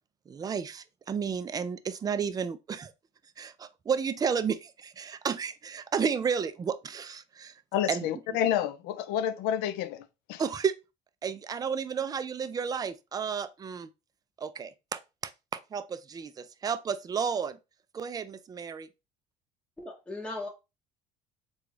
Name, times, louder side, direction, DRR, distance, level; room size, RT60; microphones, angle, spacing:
voice 1, 0.3-2.9 3.4-7.6 7.9-8.1 10.4-10.7 11.2-13.9 14.4-17.6 17.9-18.9, right 6 dB, 25° right, 0.4 m, -32 dB
voice 2, 7.7-10.4, left 10 dB, 75° left, 0.5 m, -29 dB
voice 3, 19.8-20.5, left 2 dB, 5° left, 0.7 m, -37 dB
3.8 x 2.3 x 3.1 m
supercardioid pair, 90°, 16 cm